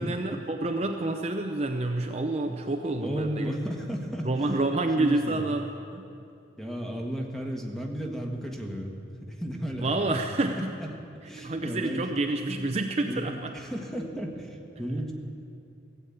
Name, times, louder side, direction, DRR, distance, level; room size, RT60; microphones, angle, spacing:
voice 1, 0.0-3.5 4.2-6.0 9.8-10.7 11.4-13.5, right 2 dB, 35° right, 4 dB, 0.6 m, -28 dB
voice 2, 3.0-4.3 4.9-5.4 6.6-8.9 9.2-10.2 10.5-10.7 11.3-12.1 13.1-15.1, equal, ahead, 1 dB, 1.4 m, -34 dB
16.0 x 8.3 x 8.4 m, 2.6 s
head